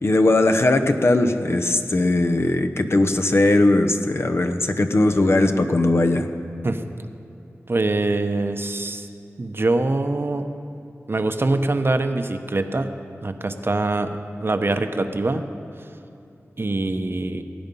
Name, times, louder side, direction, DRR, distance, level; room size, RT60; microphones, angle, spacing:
voice 1, 0.0-6.3, left 2 dB, 55° left, 6 dB, 0.9 m, -19 dB
voice 2, 7.7-9.1 9.4-10.5 11.1-12.9 13.2-15.4 16.6-17.4, right 2 dB, 50° right, 8 dB, 0.8 m, -23 dB
18.5 x 8.7 x 5.5 m, 2.8 s
wide cardioid pair, 55°, 5 cm